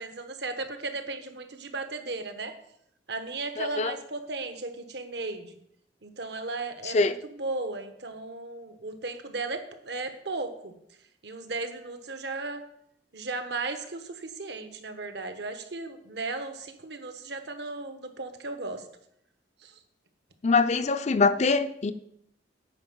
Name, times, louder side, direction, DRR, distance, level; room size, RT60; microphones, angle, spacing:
voice 1, 0.0-2.5 3.1-5.6 6.0-10.7 11.2-12.6 13.1-18.8 19.6-19.7, right 3 dB, 65° right, 1.1 m, -36 dB
voice 2, 3.6-3.9 6.8-7.1 20.4-21.9, left 4 dB, 40° left, 0.5 m, -23 dB
9.8 x 5.1 x 7.2 m
head